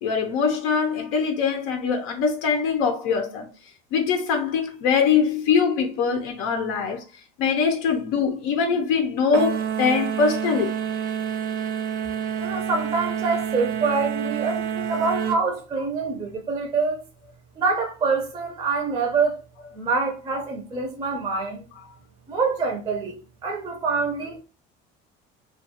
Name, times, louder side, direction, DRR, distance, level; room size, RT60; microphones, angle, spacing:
voice 1, 0.0-3.5 3.9-7.0 7.4-10.8, left 6 dB, 85° left, 0.6 m, -23 dB
sound 1, 9.3-15.4, right 8 dB, 65° right, 0.5 m, -28 dB
voice 2, 12.4-17.0 17.6-19.4 19.7-21.6 22.3-24.4, right 4 dB, 20° right, 0.4 m, -26 dB
2.3 x 2.2 x 2.8 m
cardioid pair, 145°, 21 cm